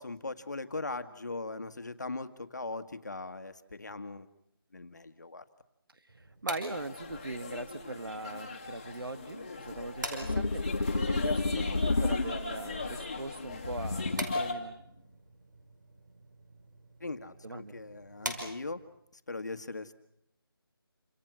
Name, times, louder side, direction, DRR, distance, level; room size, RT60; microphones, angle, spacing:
voice 1, 0.0-4.3 4.7-5.4 17.0-18.8 19.1-19.9, left 3 dB, 50° left, 9 dB, 1.7 m, -39 dB
sound 1, 6.1-19.0, right 1 dB, 50° right, 5.4 m, -46 dB
voice 2, 6.4-10.6 10.9-14.8 17.4-17.7, right 2 dB, 65° right, 10 dB, 1.9 m, -40 dB
sound 2, 6.7-14.5, left 3 dB, 15° left, 2.1 m, -39 dB
sound 3, 10.2-12.7 13.6-14.6, left 3 dB, 80° left, 1.6 m, -31 dB
28.5 x 26.5 x 6.3 m, 0.75 s
figure-of-eight pair, 180°, 13 cm